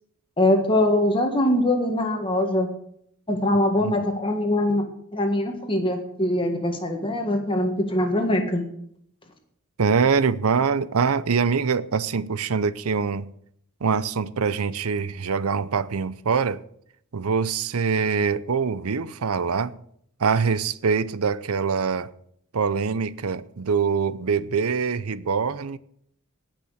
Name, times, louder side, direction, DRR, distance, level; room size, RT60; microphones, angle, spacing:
voice 1, 0.4-2.7 3.3-4.8 5.1-8.6, left 1 dB, 25° left, 1.7 m, -22 dB
voice 2, 9.8-13.3 13.8-16.6 17.1-19.7 20.2-22.1 22.5-25.8, right 5 dB, 80° right, 0.6 m, -24 dB
18.5 x 6.2 x 6.4 m
head